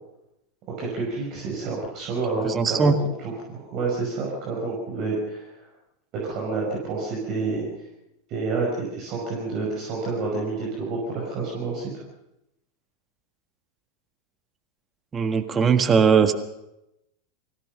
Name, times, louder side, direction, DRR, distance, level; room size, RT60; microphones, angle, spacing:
voice 1, 0.8-2.9 3.2-5.5 6.2-7.7 8.3-12.0, right 3 dB, 40° right, -3 dB, 5.5 m, -29 dB
voice 2, 2.4-3.0 15.1-16.3, right 6 dB, 20° right, 7 dB, 1.6 m, -19 dB
24.5 x 16.0 x 6.6 m, 0.88 s
figure-of-eight pair, 85°, 0 cm